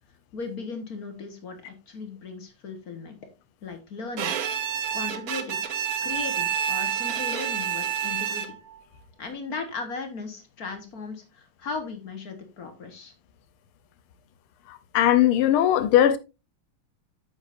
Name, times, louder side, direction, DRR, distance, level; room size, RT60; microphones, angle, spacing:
voice 1, 0.3-3.2 3.6-4.4 4.9-5.6 6.0-8.6 9.2-13.1, left 4 dB, 50° left, 1.6 m, -37 dB
Bowed string instrument, 4.2-8.8, right 9 dB, 65° right, 0.9 m, -28 dB
voice 2, 14.9-16.2, left 11 dB, 85° left, 1.6 m, -19 dB
8.7 x 7.9 x 2.5 m
omnidirectional pair, 2.3 m